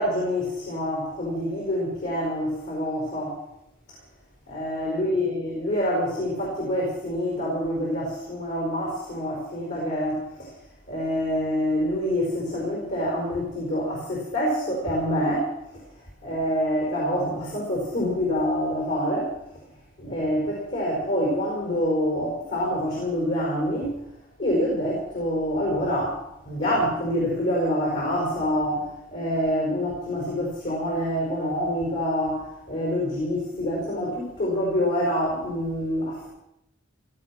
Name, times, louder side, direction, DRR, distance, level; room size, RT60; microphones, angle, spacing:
voice 1, 0.0-3.4 4.5-10.5 10.9-15.8 16.2-19.3 20.0-23.9 24.4-36.3, equal, 50° left, -3 dB, 5.1 m, -26 dB
16.5 x 13.5 x 5.9 m, 0.81 s
head